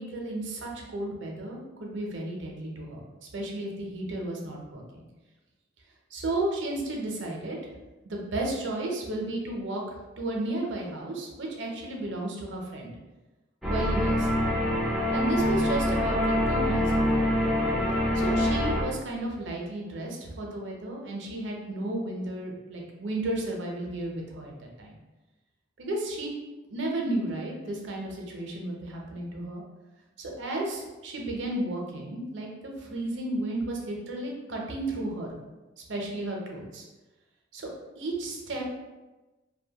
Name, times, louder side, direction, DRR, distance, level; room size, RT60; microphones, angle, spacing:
voice 1, 0.0-3.1 3.3-5.0 6.1-7.6 8.0-12.9 13.7-14.4 15.1-17.2 18.1-25.0 25.8-26.3 26.7-29.6 30.2-35.3 35.9-36.8 37.5-37.7 38.0-38.7, right 1 dB, 70° right, 0 dB, 0.6 m, -33 dB
sound 1, 13.6-18.8, left 1 dB, ahead, 0.3 m, -25 dB
2.6 x 2.2 x 2.8 m, 1.1 s
head